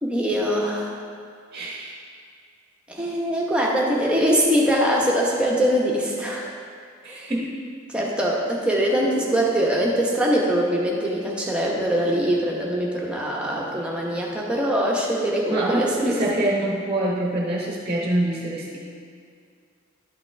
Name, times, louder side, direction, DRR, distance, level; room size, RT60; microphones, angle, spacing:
voice 1, 0.0-1.0 2.9-6.5 7.1-7.3 7.9-16.2, equal, 5° right, -3 dB, 1.0 m, -23 dB
voice 2, 1.5-2.0 7.0-7.5 15.5-18.8, right 1 dB, 25° right, -3 dB, 1.0 m, -25 dB
11.5 x 5.9 x 3.4 m, 2.2 s
head